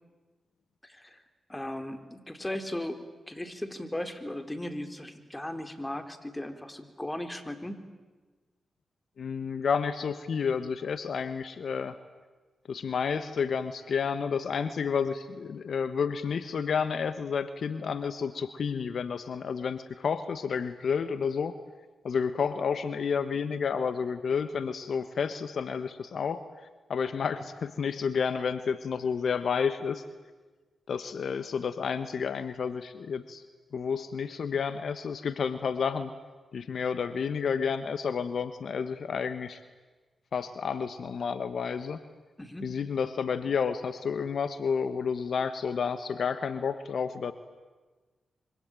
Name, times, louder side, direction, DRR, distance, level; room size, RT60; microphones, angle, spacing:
voice 1, 0.8-1.2 1.5-3.0 3.3-7.8 42.4-42.7, left 1 dB, 15° left, 8 dB, 4.1 m, -37 dB
voice 2, 9.2-12.0 12.7-21.5 22.0-26.4 26.9-30.0 30.9-33.4 33.7-36.1 36.5-39.6 40.3-42.0 42.6-47.3, left 6 dB, 70° left, 12 dB, 1.2 m, -30 dB
26.5 x 24.5 x 9.1 m, 1.3 s
supercardioid pair, 40°, 0 cm